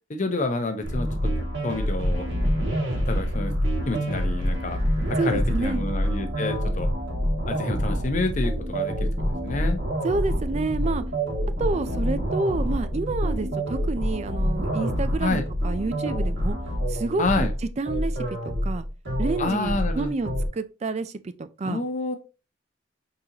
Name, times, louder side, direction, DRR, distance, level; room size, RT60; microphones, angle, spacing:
voice 1, 0.1-2.3 3.1-3.5 3.9-6.9 7.5-9.1 9.4-9.8 11.6-12.2 15.2-15.4 17.2-17.5 19.4-20.1 21.6-22.2, left 2 dB, 40° left, 0.7 m, -29 dB
sound 1, 0.8-20.5, equal, 75° right, 1.9 m, -26 dB
voice 2, 5.2-5.9 10.0-11.0 11.6-16.6 16.9-17.5 17.8-18.9 19.2-21.8, right 3 dB, 35° right, 0.4 m, -29 dB
4.3 x 3.9 x 2.8 m
head